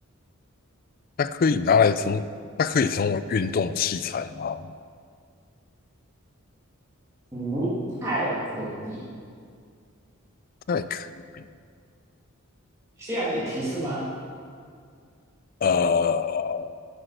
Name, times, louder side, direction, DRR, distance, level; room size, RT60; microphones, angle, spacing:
voice 1, 1.2-2.3 2.6-4.7 10.7-11.1 11.3-11.4 15.6-16.7, left 6 dB, 40° left, 13 dB, 0.3 m, -24 dB
voice 2, 7.3-7.7 8.0-9.0 13.0-14.1, right 1 dB, 15° right, -10 dB, 2.0 m, -28 dB
10.0 x 6.3 x 6.5 m, 2.2 s
head